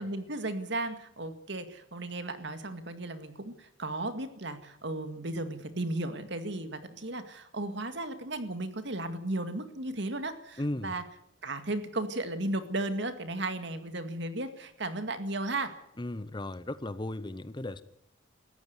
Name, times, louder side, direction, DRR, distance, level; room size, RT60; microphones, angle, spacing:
voice 1, 0.0-11.0 11.4-15.7, right 2 dB, 60° right, 9 dB, 2.1 m, -35 dB
voice 2, 10.6-10.9 16.0-17.8, left 1 dB, 25° left, 14 dB, 0.8 m, -35 dB
19.0 x 14.5 x 9.6 m, 0.77 s
head